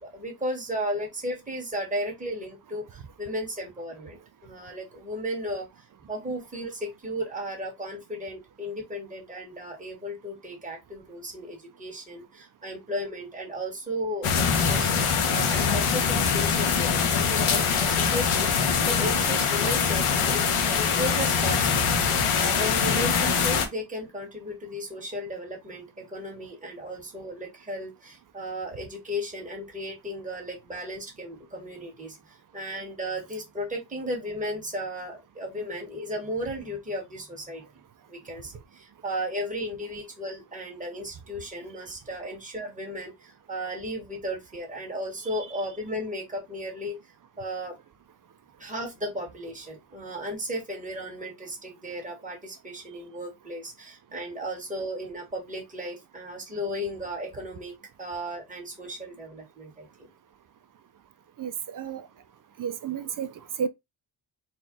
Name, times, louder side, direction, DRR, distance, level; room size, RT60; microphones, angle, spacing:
voice 1, 0.0-21.9 22.3-37.6 38.1-47.0 47.4-47.7 48.6-60.1, equal, 15° right, 1.6 m, -35 dB
sound 1, 14.2-23.7, left 6 dB, 85° left, 1.0 m, -23 dB
voice 2, 61.4-62.1 62.6-63.3 63.6-63.7, right 7 dB, 45° right, 0.5 m, -31 dB
4.3 x 2.4 x 3.7 m
wide cardioid pair, 135°, 49 cm